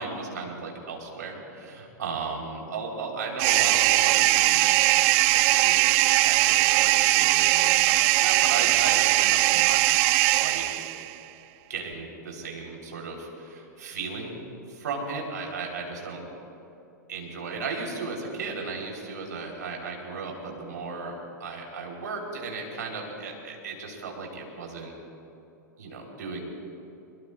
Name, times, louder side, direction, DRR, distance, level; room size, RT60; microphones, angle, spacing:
voice 1, 0.0-5.8 6.2-9.8 10.3-10.7 11.7-14.3 14.7-16.2 17.1-21.1 21.4-24.9 25.8-26.4, right 4 dB, 65° right, 0 dB, 3.6 m, -35 dB
sound 1, 3.4-11.1, right 18 dB, 45° right, 0.5 m, -21 dB
22.5 x 22.5 x 2.4 m, 2.9 s
figure-of-eight pair, 100°, 10 cm